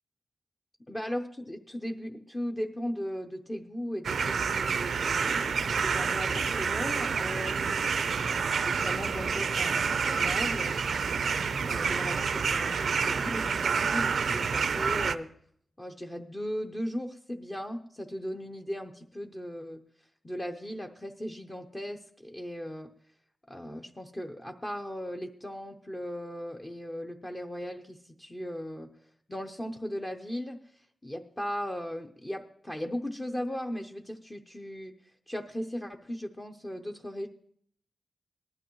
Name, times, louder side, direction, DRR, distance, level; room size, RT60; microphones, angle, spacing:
voice 1, 0.9-7.9 8.6-10.7 11.6-15.3 15.8-19.8 20.2-22.9 23.5-28.9 29.3-30.6 31.0-34.9 35.3-37.3, equal, 15° left, 3 dB, 0.7 m, -37 dB
sound 1, 4.0-15.1, right 5 dB, 80° right, 0.5 m, -28 dB
19.0 x 12.0 x 3.1 m, 0.63 s
wide cardioid pair, 150°, 0 cm